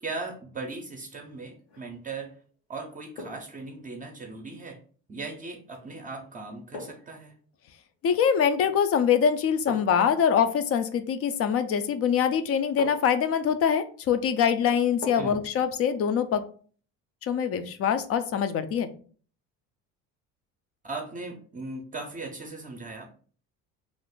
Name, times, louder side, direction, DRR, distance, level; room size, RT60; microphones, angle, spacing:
voice 1, 0.0-2.4 2.7-4.8 5.1-7.3 15.2-15.4 20.8-23.1, right 3 dB, 25° right, 1 dB, 0.6 m, -38 dB
sound 1, 1.6-1.9 3.2-3.6 5.7-5.9 6.7-7.2 8.5-8.9 9.7-10.1 11.8-11.9 12.8-13.2 15.0-15.5 15.8-15.9, left 2 dB, 85° left, 1.1 m, -41 dB
voice 2, 8.0-16.4 17.2-18.9, left 7 dB, 45° left, 10 dB, 0.4 m, -24 dB
2.5 x 2.4 x 3.6 m, 0.43 s
cardioid pair, 110°, 34 cm